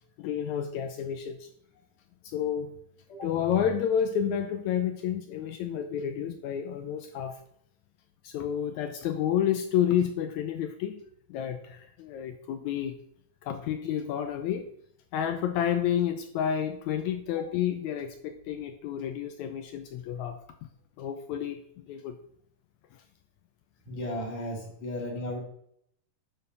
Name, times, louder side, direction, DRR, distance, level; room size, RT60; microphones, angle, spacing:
voice 1, 0.2-1.5 2.2-2.7 3.2-7.4 8.2-11.0 11.3-12.9 13.4-14.7 15.1-20.4 21.0-21.6 21.9-22.2, left 9 dB, 85° left, 8 dB, 1.7 m, -30 dB
voice 2, 23.8-25.4, left 1 dB, 55° left, -1 dB, 3.3 m, -35 dB
10.5 x 4.4 x 5.3 m, 0.69 s
omnidirectional pair, 4.0 m